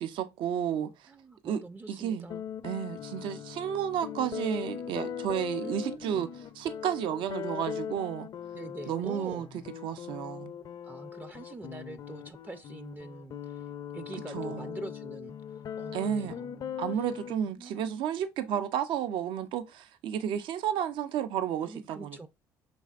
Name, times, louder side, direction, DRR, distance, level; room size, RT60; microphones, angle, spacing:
voice 1, 0.0-0.9 1.4-1.6 1.9-2.3 2.6-6.3 6.6-8.3 8.9-9.5 9.8-10.5 14.3-14.7 15.9-16.3 16.8-22.3, right 9 dB, 70° right, 0.5 m, -32 dB
voice 2, 1.1-2.5 5.6-6.2 8.5-9.5 10.8-13.7 13.9-17.1 17.5-17.9 21.6-22.3, right 2 dB, 20° right, 0.4 m, -44 dB
sound 1, 2.3-17.4, left 9 dB, 50° left, 0.4 m, -40 dB
5.3 x 3.3 x 2.4 m
supercardioid pair, 70°, 9 cm